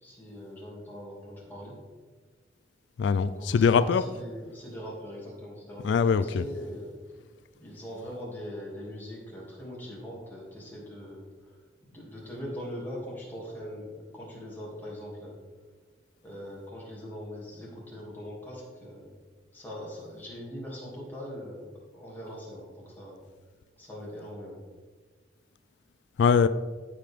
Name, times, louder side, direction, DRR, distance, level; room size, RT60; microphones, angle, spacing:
voice 1, 0.0-1.8 3.4-6.9 7.6-11.5 11.9-15.4 16.2-19.1 19.5-21.7 21.9-23.3 23.8-24.6, equal, 10° left, -5 dB, 2.5 m, -41 dB
voice 2, 3.0-4.0 5.8-6.4 26.2-26.5, left 6 dB, 85° left, 13 dB, 0.3 m, -22 dB
14.0 x 5.0 x 3.6 m, 1.5 s
head